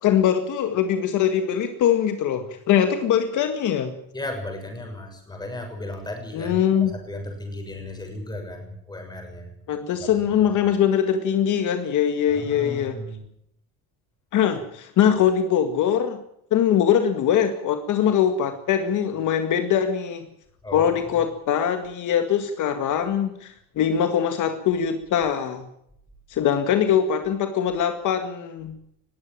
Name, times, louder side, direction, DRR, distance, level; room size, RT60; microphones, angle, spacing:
voice 1, 0.0-3.9 6.3-6.9 9.7-13.0 14.3-16.2 16.5-20.3 20.7-25.7 26.3-28.8, left 9 dB, 55° left, 7 dB, 2.0 m, -22 dB
voice 2, 4.1-6.6 7.1-9.5 10.0-10.6 12.3-13.2 20.6-20.9, left 1 dB, 10° left, 4 dB, 6.5 m, -35 dB
20.5 x 16.0 x 9.0 m, 0.73 s
cardioid pair, 160°, 35 cm